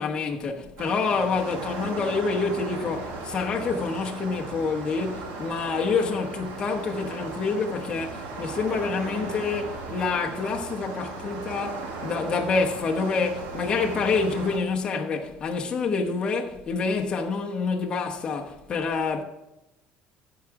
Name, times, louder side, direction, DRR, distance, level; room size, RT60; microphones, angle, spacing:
voice 1, 0.0-19.2, left 4 dB, 25° left, 1.0 m, -27 dB
sound 1, 0.8-14.6, right 3 dB, 85° right, 1.9 m, -36 dB
14.0 x 4.9 x 4.7 m
cardioid pair, 160°, 3 cm